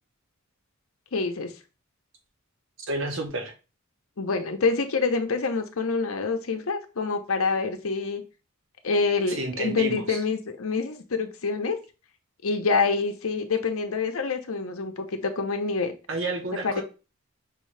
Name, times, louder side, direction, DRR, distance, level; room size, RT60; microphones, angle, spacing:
voice 1, 1.1-1.5 4.2-8.2 8.8-11.8 12.4-15.9 16.6-16.8, left 4 dB, 75° left, 6 dB, 0.7 m, -26 dB
voice 2, 2.9-3.5 9.3-10.2 16.1-16.8, right 2 dB, 60° right, 3 dB, 1.0 m, -30 dB
5.5 x 2.7 x 3.2 m, 0.31 s
head